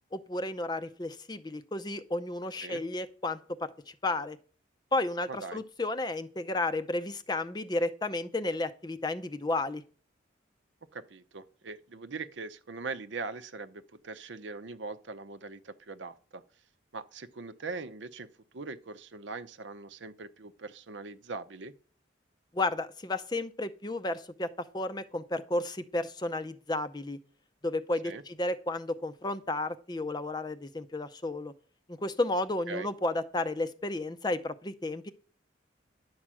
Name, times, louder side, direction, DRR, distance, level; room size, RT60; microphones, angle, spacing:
voice 1, 0.1-4.4 4.9-9.8 22.5-27.2 27.6-31.5 31.9-35.1, left 2 dB, 20° left, 0.5 m, -32 dB
voice 2, 5.3-5.6 10.9-16.4 16.9-18.3 18.5-21.7 28.0-28.2 32.7-32.9, right 4 dB, 75° right, 0.7 m, -41 dB
11.0 x 4.7 x 7.6 m
head